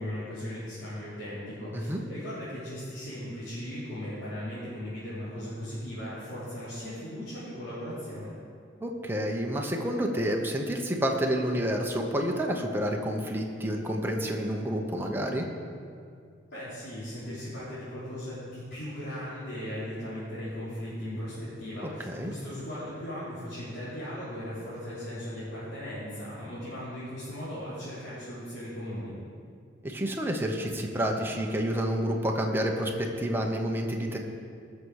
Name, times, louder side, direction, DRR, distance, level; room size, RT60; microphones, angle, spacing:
voice 1, 0.0-8.3 16.5-29.1, equal, 60° left, -13 dB, 3.6 m, -38 dB
voice 2, 8.8-15.5 21.8-22.3 29.8-34.2, equal, 10° right, 1 dB, 1.1 m, -29 dB
19.5 x 6.6 x 4.9 m, 2.3 s
head